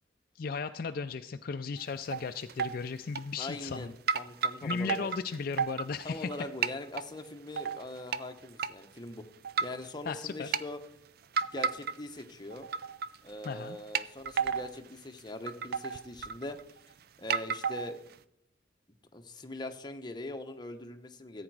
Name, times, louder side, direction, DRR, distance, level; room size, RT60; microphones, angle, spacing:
voice 1, 0.4-3.9 4.6-6.3 10.0-10.5 13.4-13.8, left 5 dB, 50° left, 9 dB, 0.4 m, -36 dB
sound 1, 1.8-2.2 2.5-2.7 3.2-3.8 4.1-6.4 6.6-7.1 7.6-8.2 8.6-8.7 9.4-9.9 10.3-10.6 11.3-12.2 12.5-13.2 13.4-13.5 13.9-14.8 15.2-15.3 15.5-16.8 17.3-18.1, right 6 dB, 55° right, 0.4 m, -32 dB
voice 2, 3.4-5.1 6.0-9.2 9.6-10.8 11.4-12.7 13.2-16.6 17.2-18.0 19.1-21.4, left 2 dB, 25° left, 6 dB, 0.8 m, -42 dB
14.5 x 8.8 x 4.7 m, 0.78 s
head